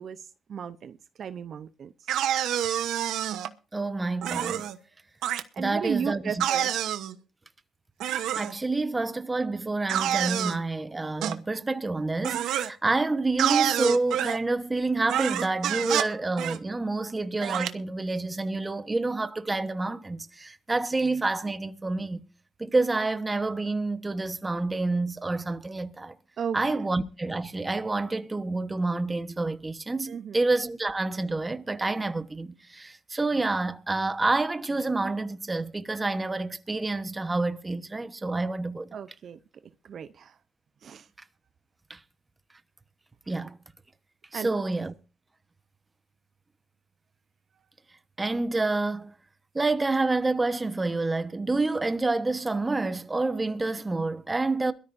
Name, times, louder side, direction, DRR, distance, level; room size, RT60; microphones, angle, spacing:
voice 1, 0.0-2.1 5.5-6.7 26.4-26.6 30.1-30.4 38.9-39.4 39.8-40.4 40.8-41.1 44.3-44.6, right 7 dB, 55° right, 0.8 m, -35 dB
sound 1, 2.1-3.5 4.2-4.8 5.2-5.4 6.4-7.1 8.0-8.5 9.9-10.6 11.2-11.4 12.2-12.7 13.4-14.4 15.1-16.1 16.4-16.6 17.4-17.7, right 11 dB, 85° right, 1.0 m, -27 dB
voice 2, 3.7-4.7 5.6-6.4 8.3-22.2 22.6-26.2 26.5-39.0 41.9-42.0 43.3-43.6 44.3-44.9 48.2-49.1 49.5-54.7, right 3 dB, 20° right, 1.1 m, -28 dB
22.5 x 13.5 x 2.7 m
cardioid pair, 90°, 0 cm